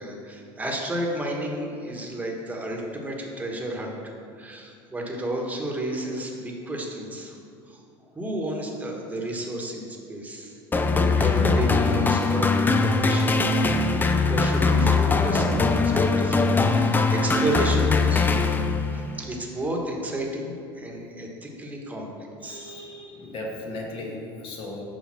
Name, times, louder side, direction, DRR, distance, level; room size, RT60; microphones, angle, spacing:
voice 1, 0.0-7.4 7.7-7.8 8.1-10.6 11.2-13.5 13.9-16.4 16.7-18.2 18.9-22.7, right 1 dB, 10° right, 0 dB, 1.4 m, -32 dB
sound 1, 10.7-19.0, left 3 dB, 15° left, 0.5 m, -21 dB
voice 2, 16.4-17.1 18.6-19.1 22.4-24.8, left 2 dB, 45° left, -1 dB, 1.8 m, -38 dB
7.2 x 5.2 x 6.1 m, 2.4 s
supercardioid pair, 115°, 13 cm